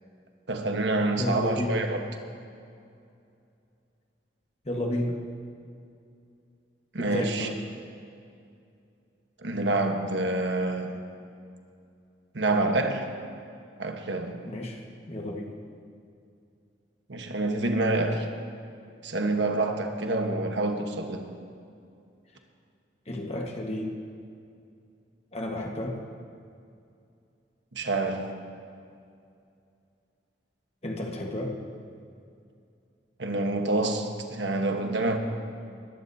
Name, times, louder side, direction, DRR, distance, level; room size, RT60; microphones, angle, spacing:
voice 1, 0.5-2.0 6.9-7.5 9.4-11.0 12.3-13.1 13.8-14.4 17.1-18.3 19.0-21.3 27.7-28.3 33.2-35.2, right 2 dB, 80° right, 4 dB, 1.3 m, -27 dB
voice 2, 1.2-1.8 4.6-5.2 7.0-7.6 14.4-14.8 15.1-15.5 23.1-23.9 25.3-26.0 30.8-31.5, left 1 dB, 35° left, 0 dB, 1.5 m, -32 dB
21.5 x 14.5 x 2.8 m, 2.5 s
head